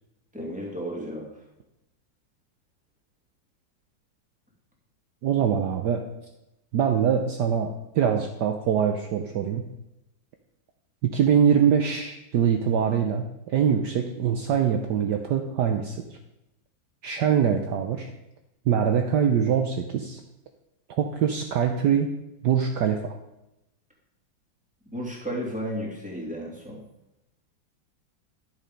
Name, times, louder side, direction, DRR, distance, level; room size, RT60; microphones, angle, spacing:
voice 1, 0.3-1.3 24.9-26.8, equal, 5° right, -3 dB, 2.6 m, -33 dB
voice 2, 5.2-6.0 6.7-9.6 11.0-16.2 17.0-18.1 18.7-20.2 20.9-22.1 22.4-23.2, right 8 dB, 65° right, 5 dB, 1.3 m, -23 dB
11.5 x 7.2 x 5.3 m, 0.92 s
omnidirectional pair, 2.1 m